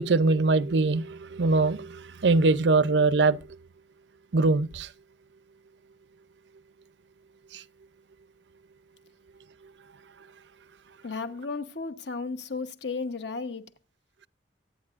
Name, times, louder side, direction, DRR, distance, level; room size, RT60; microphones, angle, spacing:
voice 1, 0.0-3.4 4.3-4.9 7.5-7.6, right 3 dB, 75° right, 0.6 m, -23 dB
voice 2, 11.0-13.7, left 4 dB, 70° left, 1.1 m, -34 dB
24.0 x 9.3 x 2.5 m
head